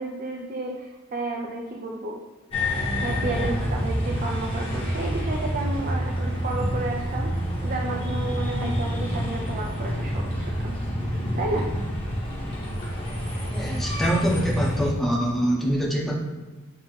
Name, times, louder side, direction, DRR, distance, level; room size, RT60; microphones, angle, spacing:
voice 1, 0.0-2.2 3.0-10.7 11.4-11.7, right 2 dB, 40° right, 0 dB, 0.4 m, -32 dB
sound 1, 2.5-14.9, equal, 25° left, 1.0 m, -28 dB
voice 2, 13.5-16.1, equal, ahead, -3 dB, 0.8 m, -24 dB
5.9 x 2.9 x 3.1 m, 1.3 s
head